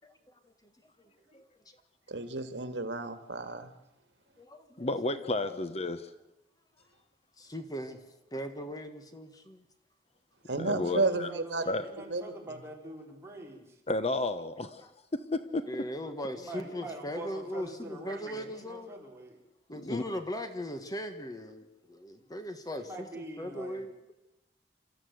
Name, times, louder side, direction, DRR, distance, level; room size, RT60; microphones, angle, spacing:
voice 1, 1.0-1.5 4.4-4.9 5.5-5.6 7.4-8.0 8.3-9.6 14.8-14.9 15.7-18.9 19.7-23.1 23.4-24.1, equal, 20° left, 8 dB, 1.5 m, -39 dB
voice 2, 2.1-3.7 10.5-11.6 12.1-12.2, right 3 dB, 85° right, 9 dB, 1.8 m, -31 dB
voice 3, 4.8-6.1 10.6-11.3 11.7-11.8 13.9-14.8 15.1-15.6 19.8-20.0, left 2 dB, 35° left, 11 dB, 1.0 m, -32 dB
voice 4, 10.4-13.8 16.3-19.4 22.2-22.3 22.7-23.9, right 1 dB, 15° right, -1 dB, 4.6 m, -45 dB
29.0 x 13.5 x 8.0 m, 0.94 s
head